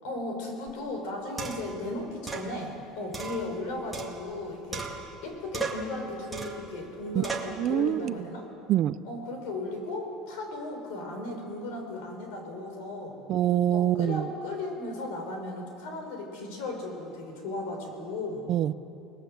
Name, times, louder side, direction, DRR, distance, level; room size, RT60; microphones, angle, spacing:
voice 1, 0.0-4.9 5.2-8.5 9.0-13.2 13.7-18.4, left 2 dB, 70° left, 3 dB, 5.6 m, -36 dB
sound 1, 0.7-0.8 1.4-1.8 2.3-2.5 3.1-4.4 4.7-5.2 5.5-5.9 6.3-6.7 7.2-7.6, right 4 dB, 5° right, 2.0 m, -36 dB
voice 2, 7.6-8.1 8.7-9.0 13.3-14.3 18.5-18.7, right 12 dB, 35° right, 15 dB, 0.5 m, -25 dB
28.0 x 20.0 x 7.9 m, 2.9 s
cardioid pair, 175°, 0 cm